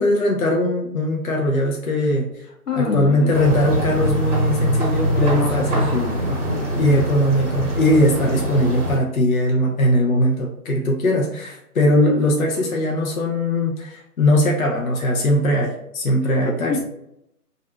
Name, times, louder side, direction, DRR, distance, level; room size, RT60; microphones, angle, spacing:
voice 1, 0.0-2.3 2.7-5.9 6.7-16.8, left 1 dB, 60° left, 0 dB, 0.6 m, -20 dB
voice 2, 2.7-3.4 5.1-6.7 8.2-8.4 16.3-16.8, left 4 dB, 85° left, 2 dB, 0.8 m, -26 dB
sound 1, 3.3-9.0, right 1 dB, 50° right, 0.9 m, -23 dB
2.6 x 2.4 x 2.3 m, 0.78 s
figure-of-eight pair, 155°, 47 cm